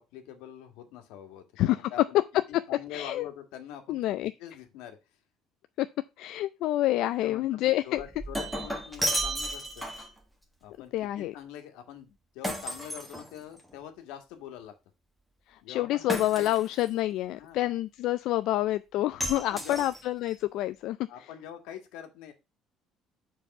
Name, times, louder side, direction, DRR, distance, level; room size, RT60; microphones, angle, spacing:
voice 1, 0.0-2.2 2.5-4.1 4.4-5.0 7.2-9.9 10.6-14.7 15.6-16.5 17.3-17.7 19.3-19.9 21.1-22.3, left 10 dB, 90° left, 1.9 m, -44 dB
voice 2, 2.9-3.3 3.9-4.3 5.8-5.9 6.2-8.0 10.9-11.3 15.5-21.0, left 15 dB, 65° left, 0.4 m, -28 dB
Shatter, 8.0-10.2 12.4-13.7 16.1-16.9 19.2-20.3, right 1 dB, ahead, 1.6 m, -33 dB
7.3 x 4.7 x 5.3 m
cardioid pair, 150°, 0 cm